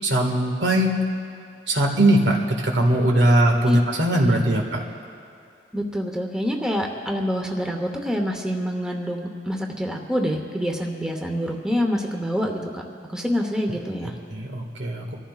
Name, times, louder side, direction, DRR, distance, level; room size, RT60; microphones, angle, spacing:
voice 1, 0.0-1.0 1.7-4.8 14.3-15.1, right 1 dB, 85° right, 1 dB, 1.8 m, -20 dB
voice 2, 5.7-12.8 13.1-14.1, equal, 5° right, 1 dB, 0.9 m, -26 dB
26.0 x 14.5 x 2.4 m, 2.4 s
head